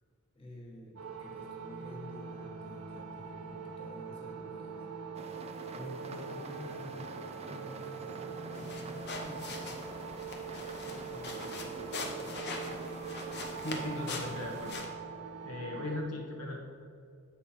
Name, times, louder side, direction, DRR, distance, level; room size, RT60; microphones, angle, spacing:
voice 1, 0.3-4.9 5.3-7.1 7.4-9.6 11.1-12.4, equal, 25° left, -3 dB, 1.4 m, -50 dB
sound 1, 1.0-16.0, right 5 dB, 85° right, 1.0 m, -43 dB
sound 2, 5.1-14.7, right 2 dB, 30° right, 0.4 m, -46 dB
sound 3, 8.5-14.9, left 3 dB, 50° left, 0.9 m, -43 dB
voice 2, 13.6-14.8 15.4-16.7, left 2 dB, 75° left, 0 dB, 1.0 m, -38 dB
8.1 x 4.3 x 5.7 m, 2.3 s
head